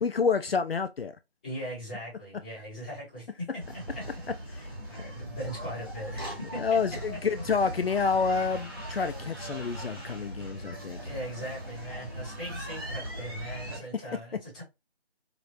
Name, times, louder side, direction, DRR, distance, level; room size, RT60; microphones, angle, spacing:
voice 1, 0.0-1.2 4.5-4.7 6.6-11.0 13.9-14.0, left 5 dB, 60° left, 0.5 m, -28 dB
voice 2, 1.4-3.5 4.9-6.2 6.5-6.8 11.0-14.6, equal, 5° left, 1.2 m, -39 dB
sound 1, 3.6-13.8, right 1 dB, 20° right, 1.0 m, -39 dB
4.9 x 2.4 x 2.8 m
figure-of-eight pair, 165°, 33 cm